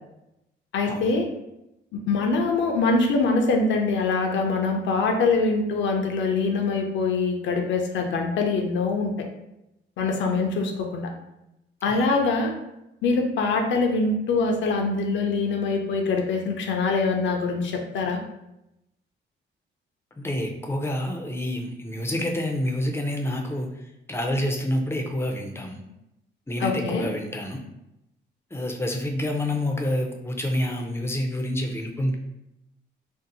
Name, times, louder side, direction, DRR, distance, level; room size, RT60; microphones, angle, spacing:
voice 1, 0.7-1.3 1.9-9.1 10.0-11.1 11.8-12.5 13.0-18.2 26.6-27.0, left 3 dB, 70° left, 3 dB, 0.6 m, -24 dB
voice 2, 20.2-23.7 24.1-25.8 26.5-27.6 28.5-32.1, left 1 dB, 10° left, 2 dB, 0.5 m, -28 dB
2.6 x 2.0 x 3.9 m, 0.88 s
cardioid pair, 90°, 20 cm